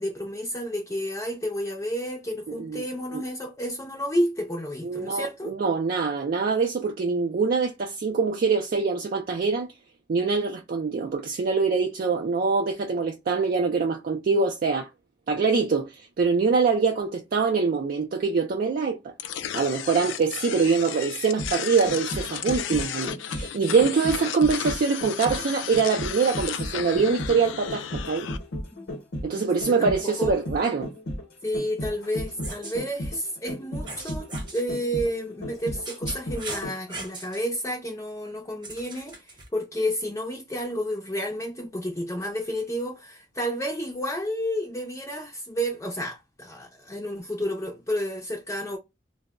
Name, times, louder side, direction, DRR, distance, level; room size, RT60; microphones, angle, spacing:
voice 1, 0.0-5.5 20.0-20.1 28.7-28.9 29.3-30.4 31.4-48.8, equal, 15° left, 0.5 m, -31 dB
voice 2, 4.8-9.7 10.1-14.9 15.3-19.1 19.5-28.3 29.2-30.9, right 5 dB, 50° right, 0.4 m, -24 dB
sound 1, 19.2-28.4, left 9 dB, 85° left, 0.3 m, -34 dB
sound 2, 21.1-37.0 37.3-37.4, left 1 dB, 65° left, 0.8 m, -35 dB
sound 3, 32.3-32.8 33.9-34.6 35.5-37.4 38.6-39.5, right 3 dB, 25° right, 0.8 m, -39 dB
2.1 x 2.0 x 3.4 m
head